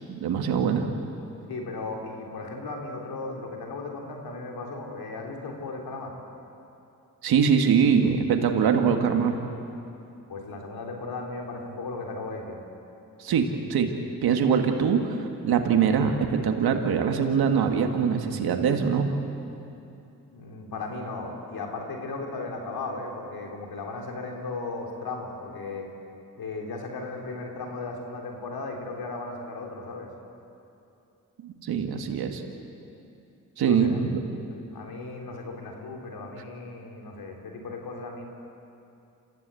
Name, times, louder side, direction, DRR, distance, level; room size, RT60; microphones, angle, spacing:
voice 1, 0.1-0.9 7.2-9.4 13.2-13.9 14.2-15.2 15.4-19.1 31.4-32.4 33.6-34.2, right 6 dB, 90° right, 4 dB, 1.8 m, -23 dB
voice 2, 1.5-6.1 10.3-12.6 20.3-25.9 26.4-30.1 33.6-34.1 34.7-38.3, left 3 dB, 80° left, 1 dB, 3.6 m, -36 dB
27.5 x 15.0 x 8.4 m, 2.7 s
cardioid pair, 55°, 36 cm